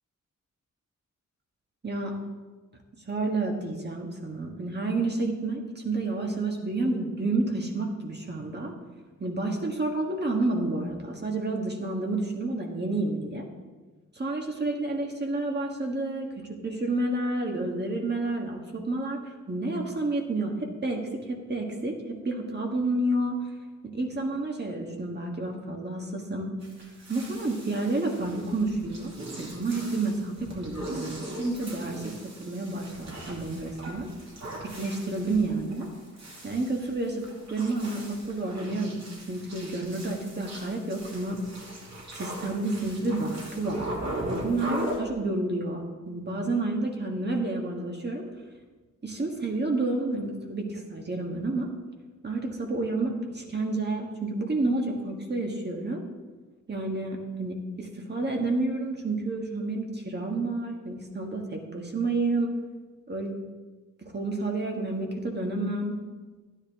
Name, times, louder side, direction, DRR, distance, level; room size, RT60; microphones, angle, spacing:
voice 1, 1.8-2.1 3.1-8.7 9.2-13.4 14.1-19.2 19.5-23.4 23.9-26.5 27.1-29.1 29.4-34.1 34.6-35.9 36.4-39.0 39.3-41.4 42.1-43.9 44.2-48.2 49.0-51.7 52.2-56.0 56.7-62.5 63.1-63.4 64.0-66.0, right 2 dB, 35° right, 1 dB, 1.6 m, -30 dB
sound 1, 26.6-45.0, right 1 dB, 60° right, 2.8 m, -39 dB
12.0 x 9.9 x 3.6 m, 1.3 s
wide cardioid pair, 120°, 31 cm